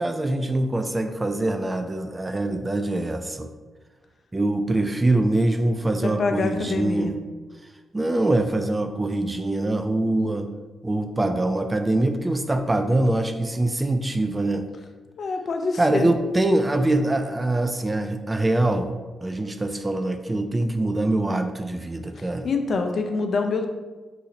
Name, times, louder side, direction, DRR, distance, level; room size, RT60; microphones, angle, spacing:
voice 1, 0.0-3.5 4.3-7.1 7.9-10.5 10.8-14.7 15.8-18.9 19.2-22.5, right 2 dB, 25° right, 6 dB, 0.3 m, -24 dB
voice 2, 6.0-7.2 15.2-16.1 22.1-23.7, left 4 dB, 60° left, 5 dB, 0.4 m, -26 dB
4.1 x 2.5 x 2.8 m, 1.3 s
hypercardioid pair, 45°, 0 cm